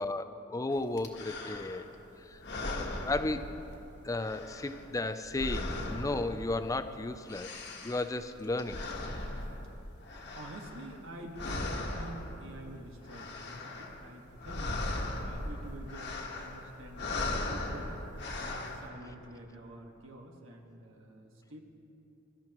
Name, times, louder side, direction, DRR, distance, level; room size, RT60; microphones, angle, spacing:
voice 1, 0.0-1.9 2.2-2.4 2.7-3.5 4.0-7.5 7.8-8.8, left 2 dB, 15° left, 10 dB, 0.4 m, -34 dB
sound 1, 1.0-1.9 2.3-3.9 4.2-6.8 7.1-11.1 11.3-12.6 12.9-14.0 14.3-18.9, left 2 dB, 55° left, 1.5 m, -38 dB
voice 2, 10.3-14.8 15.2-18.0 18.4-21.6, right 1 dB, 65° right, 1 dB, 1.7 m, -48 dB
23.0 x 13.0 x 3.0 m, 2.9 s
head